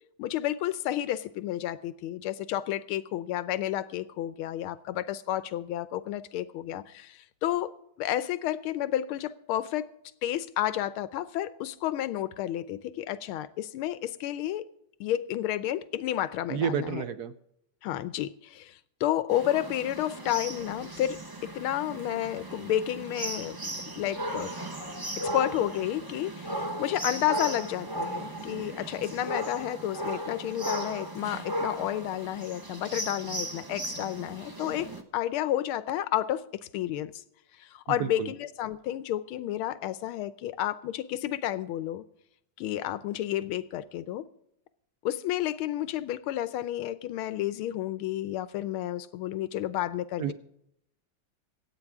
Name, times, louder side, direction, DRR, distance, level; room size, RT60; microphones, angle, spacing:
voice 1, 0.2-7.7 8.0-9.9 10.2-14.7 15.0-17.0 17.8-23.6 24.0-24.6 25.2-34.9 35.1-36.4 36.7-37.1 37.6-42.0 42.6-44.2 45.0-50.3, left 12 dB, 85° left, 1.6 m, -31 dB
voice 2, 16.5-17.3 37.9-38.3 50.2-50.3, right 8 dB, 60° right, 1.2 m, -30 dB
sound 1, 19.3-35.0, right 1 dB, 20° right, 0.6 m, -36 dB
25.0 x 8.7 x 3.6 m
omnidirectional pair, 2.3 m